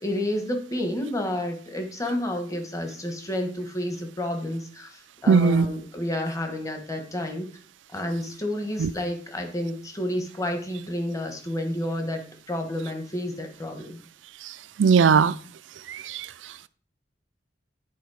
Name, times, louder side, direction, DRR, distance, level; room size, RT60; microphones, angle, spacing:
voice 1, 0.0-7.5 7.9-14.0, left 1 dB, 20° left, 1.2 m, -30 dB
voice 2, 5.3-5.7 8.8-8.9 14.8-15.3 16.1-16.3, right 5 dB, 85° right, 0.4 m, -18 dB
10.5 x 4.2 x 4.7 m
head